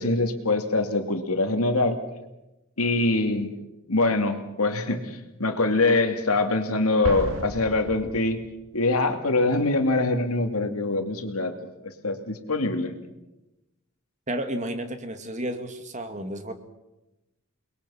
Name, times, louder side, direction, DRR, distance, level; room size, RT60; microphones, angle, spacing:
voice 1, 0.0-2.0 2.8-3.5 3.9-8.4 8.7-11.7 12.0-12.9, left 2 dB, 85° left, 6 dB, 2.6 m, -24 dB
Explosion, 7.0-8.8, equal, 60° right, 2.5 m, -34 dB
voice 2, 14.3-16.5, right 1 dB, 35° right, 7 dB, 2.0 m, -32 dB
29.5 x 21.5 x 5.8 m, 0.96 s
head